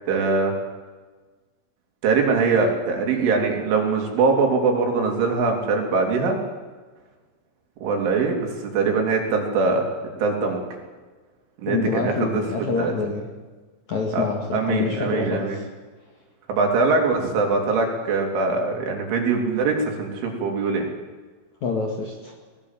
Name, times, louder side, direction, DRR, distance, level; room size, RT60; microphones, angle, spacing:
voice 1, 0.1-0.5 2.0-6.4 7.8-9.9 10.2-10.6 11.6-12.9 14.1-14.3 14.5-15.6 16.5-20.9, right 4 dB, 75° right, 2 dB, 5.7 m, -22 dB
voice 2, 11.7-13.2 13.9-15.6 21.6-22.4, left 4 dB, 50° left, 2 dB, 2.4 m, -26 dB
20.5 x 18.5 x 7.5 m, 1.3 s
omnidirectional pair, 5.7 m